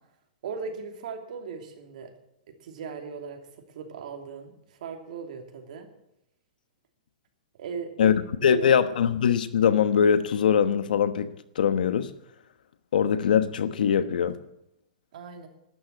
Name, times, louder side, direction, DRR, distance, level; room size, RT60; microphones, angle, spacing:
voice 1, 0.4-2.1 2.5-5.9 7.5-8.7 15.1-15.5, right 5 dB, 65° right, 2.9 m, -38 dB
voice 2, 8.4-11.3 11.5-12.1 12.9-14.4, left 7 dB, 80° left, 1.2 m, -22 dB
12.5 x 9.7 x 8.6 m
hypercardioid pair, 150°, 5 cm